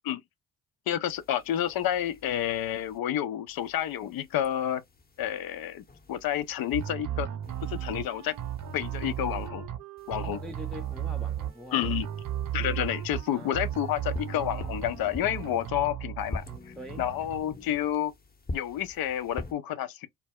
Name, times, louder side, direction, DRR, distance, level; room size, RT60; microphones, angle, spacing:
voice 1, 0.9-4.8 5.2-7.3 7.6-8.3 8.7-9.6 10.1-10.4 11.7-12.1 12.5-18.1 18.5-20.1, left 11 dB, 60° left, 0.6 m, -30 dB
sound 1, 1.1-3.0 3.5-6.9 7.4-9.5 10.0-15.7 16.2-19.5, left 2 dB, 25° left, 0.9 m, -45 dB
sound 2, 6.7-8.0 8.4-9.8 10.1-11.5 11.8-13.2 13.5-14.9 15.2-16.6 16.9-17.4, right 11 dB, 50° right, 0.8 m, -34 dB
Wind instrument woodwind instrument, 6.9-15.7, right 13 dB, 75° right, 0.5 m, -49 dB
voice 2, 10.2-11.9 13.3-13.8 16.8-17.1, equal, ahead, 0.5 m, -43 dB
2.1 x 2.0 x 3.5 m
hypercardioid pair, 45°, 40 cm